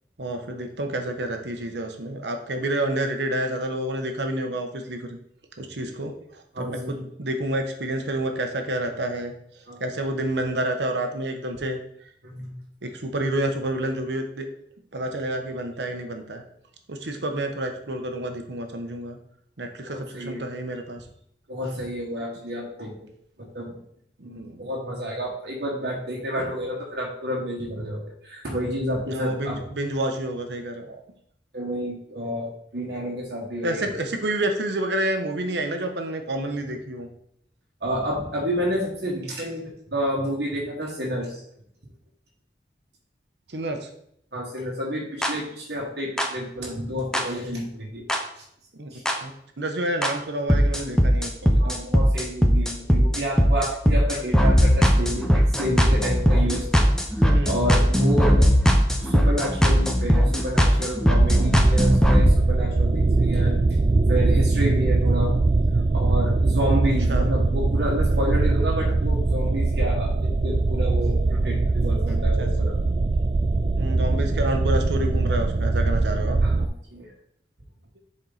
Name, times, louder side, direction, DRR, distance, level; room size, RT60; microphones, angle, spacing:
voice 1, 0.2-5.2 5.6-9.3 9.8-11.8 12.8-14.5 14.9-16.4 16.9-19.2 19.6-21.0 24.2-24.7 29.1-31.0 33.6-37.1 43.5-43.9 48.8-48.9 49.2-49.3 49.6-51.6 57.2-57.5 67.1-67.2 72.4-72.5 73.7-76.4, right 1 dB, 85° right, 5 dB, 1.0 m, -29 dB
voice 2, 6.5-7.0 9.7-9.8 12.2-12.5 19.9-20.4 21.5-22.9 23.4-23.7 24.2-29.6 31.5-33.9 37.8-39.6 39.9-41.4 44.3-48.4 48.9-49.0 51.6-56.9 57.1-58.5 59.0-63.5 64.1-65.3 65.9-72.7 76.4-77.1, equal, 70° right, -3 dB, 1.5 m, -30 dB
sound 1, 45.2-45.3 46.2-46.3 47.1-47.2 48.1-48.2 49.1-49.2 50.0-50.1 50.5-62.3, equal, 5° left, 0.6 m, -19 dB
sound 2, 61.2-76.7, right 3 dB, 30° right, 0.3 m, -22 dB
7.4 x 4.3 x 4.0 m, 0.70 s
head